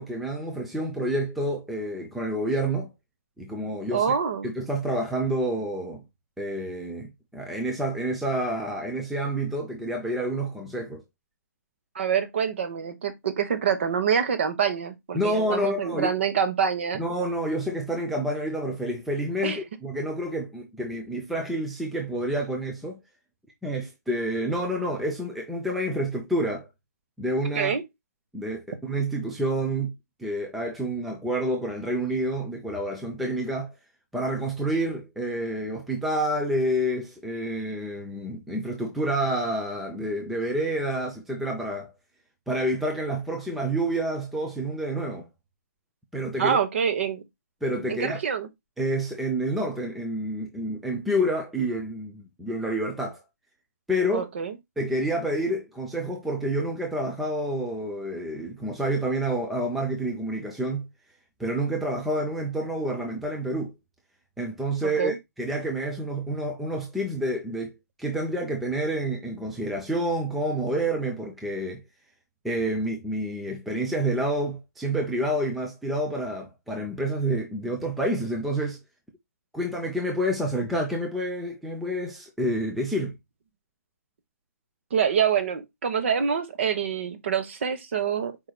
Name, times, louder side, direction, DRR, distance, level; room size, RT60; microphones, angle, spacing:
voice 1, 0.0-2.9 3.4-4.1 4.4-6.0 6.4-11.0 15.1-16.1 16.9-23.0 23.6-26.7 27.2-27.7 28.3-29.9 30.2-33.7 34.1-41.9 42.5-45.3 46.1-46.6 47.6-48.2 48.8-53.2 53.9-54.3 54.8-60.9 61.4-63.7 64.4-71.8 72.4-78.8 79.5-83.1, right 1 dB, ahead, 0.4 m, -28 dB
voice 2, 3.9-4.5 11.9-17.0 19.4-19.6 27.5-27.8 46.4-47.2 47.9-48.5 54.1-54.5 64.8-65.2 84.9-88.3, right 7 dB, 40° right, 1.1 m, -26 dB
4.7 x 4.7 x 2.2 m
hypercardioid pair, 170°, 10 cm